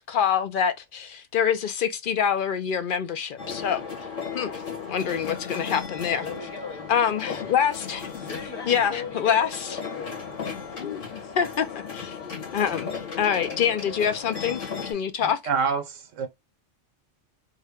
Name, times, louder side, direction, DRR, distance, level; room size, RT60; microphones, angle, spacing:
voice 1, 0.0-3.8 4.3-4.6 4.9-6.2 6.9-8.1 8.7-9.8 10.8-12.2 12.5-12.9 13.2-15.4, left 8 dB, 60° left, 0.6 m, -26 dB
sound 1, 3.4-14.9, left 6 dB, 80° left, 1.7 m, -36 dB
voice 2, 6.2-7.0 7.3-7.5 8.1-9.5 9.9-10.2 10.7-10.8, left 5 dB, 20° left, 1.2 m, -38 dB
voice 3, 15.5-16.3, right 5 dB, 80° right, 1.1 m, -26 dB
3.6 x 2.1 x 3.5 m
omnidirectional pair, 1.3 m